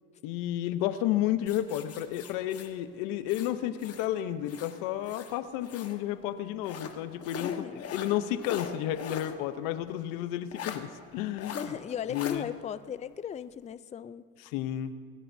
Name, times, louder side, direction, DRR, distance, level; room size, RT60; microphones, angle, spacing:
voice 1, 0.2-7.6 7.9-11.6 12.1-12.5 14.4-14.9, left 12 dB, 90° left, 12 dB, 0.8 m, -31 dB
sound 1, 1.5-4.1 4.4-6.0 6.6-9.4 9.7-9.8 10.5-10.8 11.4-11.7 12.1-12.4, left 7 dB, 45° left, 1.4 m, -41 dB
voice 2, 7.4-7.9 11.5-14.2, left 8 dB, 20° left, 14 dB, 0.4 m, -37 dB
20.5 x 16.5 x 2.7 m, 2.3 s
cardioid pair, 100°, 33 cm